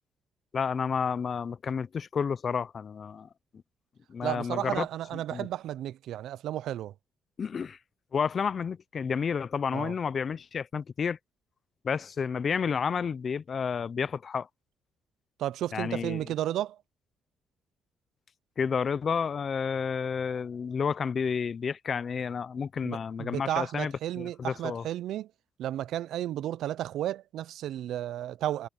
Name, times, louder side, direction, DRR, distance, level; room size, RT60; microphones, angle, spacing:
voice 1, 0.5-3.3 4.1-4.9 5.3-5.5 7.4-7.8 8.1-11.2 11.8-14.5 15.7-16.3 18.6-24.9, left 6 dB, 45° left, 0.6 m, -30 dB
voice 2, 4.2-6.9 9.7-9.9 15.4-16.8 22.8-25.3 25.6-28.7, right 12 dB, 80° right, 0.6 m, -33 dB
cardioid pair, 90°, 0 cm